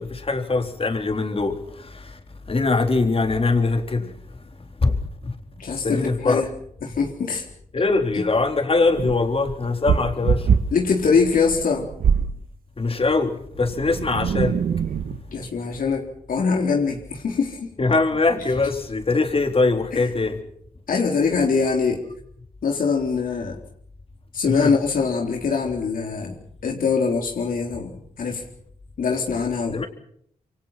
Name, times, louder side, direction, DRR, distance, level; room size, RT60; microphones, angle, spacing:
voice 1, 0.0-2.2 2.5-4.1 4.8-5.0 5.2-5.3 5.7-6.4 7.7-10.5 12.8-14.6 17.8-20.4 24.5-24.7 29.7-29.9, left 3 dB, 40° left, 5 dB, 3.8 m, -22 dB
voice 2, 5.6-6.5 6.8-7.4 8.1-8.2 10.7-11.9 15.3-17.7 19.9-20.1 20.9-22.0 22.6-23.6 24.3-26.4 26.6-28.4 29.0-29.8, left 5 dB, 75° left, 1 dB, 4.1 m, -23 dB
sound 1, 9.0-12.4 13.6-15.3, right 7 dB, 80° right, 1.4 m, -23 dB
27.5 x 24.0 x 5.9 m, 0.67 s
cardioid pair, 65°, 14 cm